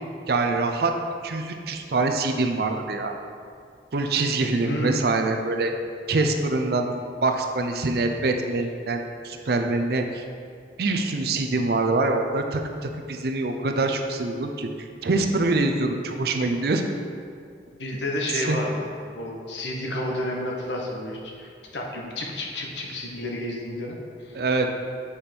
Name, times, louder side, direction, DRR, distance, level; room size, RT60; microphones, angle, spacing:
voice 1, 0.3-0.9 1.2-3.1 3.9-5.7 6.1-6.9 7.2-10.2 10.8-14.7 15.0-16.8 18.3-18.6 24.3-24.7, right 3 dB, 60° right, 5 dB, 0.5 m, -24 dB
voice 2, 4.6-5.1 17.8-18.9 19.1-24.4, left 1 dB, 80° left, -1 dB, 1.1 m, -31 dB
7.0 x 5.1 x 4.5 m, 2.3 s
head